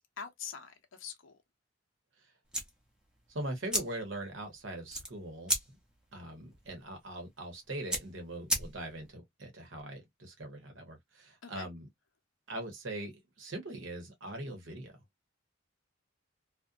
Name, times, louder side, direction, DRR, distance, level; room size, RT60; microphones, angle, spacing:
voice 1, 0.2-1.4 11.4-11.7, left 7 dB, 70° left, 0.6 m, -44 dB
sound 1, 2.5-9.1, equal, 5° right, 0.7 m, -38 dB
voice 2, 3.3-5.5 6.1-11.8 12.5-14.9, right 1 dB, 70° right, 1.0 m, -41 dB
2.6 x 2.1 x 2.4 m
head